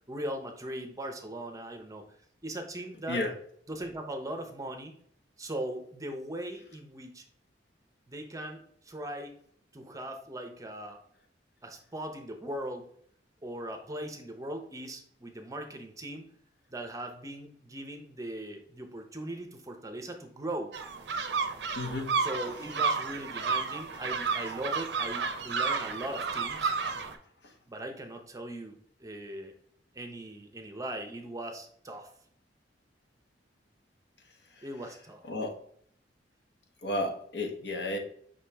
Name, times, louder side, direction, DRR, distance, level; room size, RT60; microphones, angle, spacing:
voice 1, 0.1-2.1 2.4-3.2 3.7-4.9 5.4-7.2 8.1-9.4 9.7-11.0 11.6-12.9 13.4-16.3 16.7-20.7 22.2-26.7 27.7-29.5 29.9-32.1 34.6-35.2, right 1 dB, 20° right, 5 dB, 0.6 m, -39 dB
sound 1, 20.7-27.2, right 5 dB, 70° right, 0.5 m, -31 dB
voice 2, 21.8-22.1 35.3-35.5 36.8-38.0, left 1 dB, 70° left, 3 dB, 0.9 m, -32 dB
5.4 x 2.9 x 3.3 m, 0.63 s
head